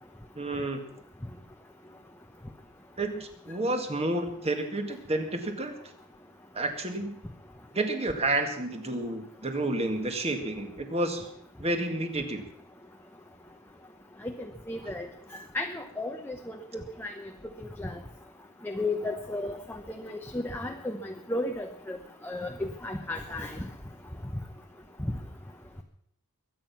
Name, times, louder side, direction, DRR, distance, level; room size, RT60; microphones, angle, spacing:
voice 1, 0.4-0.9 3.0-5.8 6.5-7.2 7.7-11.3 11.6-12.4, right 2 dB, 30° right, 5 dB, 2.0 m, -30 dB
voice 2, 14.7-15.1 15.5-16.6 17.0-17.1 17.6-17.9 18.6-22.0 22.2-23.6, left 2 dB, 10° left, 3 dB, 0.9 m, -34 dB
22.0 x 9.1 x 5.9 m, 0.71 s
head